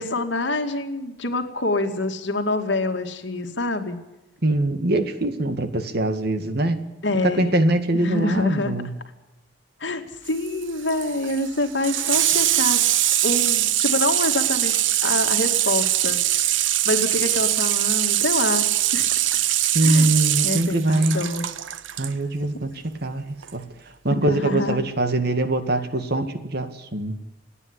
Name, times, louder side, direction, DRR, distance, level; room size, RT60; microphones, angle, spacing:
voice 1, 0.0-4.0 7.0-7.5 7.9-8.8 9.8-12.8 13.2-16.2 16.8-18.7 18.9-19.1 19.3-19.4 19.8-20.1 20.4-21.5 24.1-24.8, left 2 dB, 70° left, 5 dB, 2.4 m, -26 dB
voice 2, 4.4-6.8 7.2-8.9 19.7-21.2 22.0-22.7 23.0-23.3 23.5-23.6 24.0-27.2, right 1 dB, 60° right, 9 dB, 2.0 m, -22 dB
Water tap faucet / Sink (filling or washing), 10.3-22.1 23.4-23.5, right 13 dB, 80° right, 0.8 m, -22 dB
28.5 x 9.6 x 9.8 m, 1.0 s
head